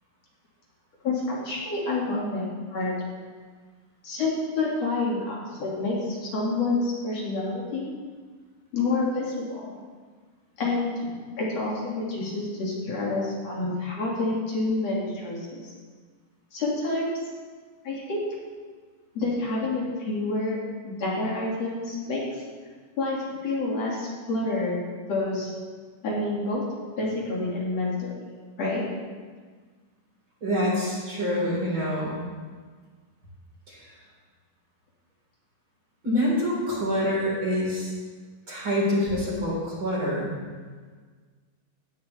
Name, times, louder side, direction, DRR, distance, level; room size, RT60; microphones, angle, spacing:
voice 1, 1.0-2.9 4.0-7.9 8.7-9.7 10.6-11.0 11.4-15.7 16.5-17.2 17.8-18.2 19.1-20.6 20.8-22.4 23.0-25.5 26.0-26.7 27.0-28.1 28.6-28.8, left 2 dB, 60° left, -5 dB, 3.3 m, -28 dB
voice 2, 30.4-32.2 33.7-33.9 36.0-37.9 38.5-40.3, equal, 40° right, -6 dB, 4.9 m, -26 dB
16.5 x 10.5 x 3.3 m, 1.5 s
omnidirectional pair, 3.4 m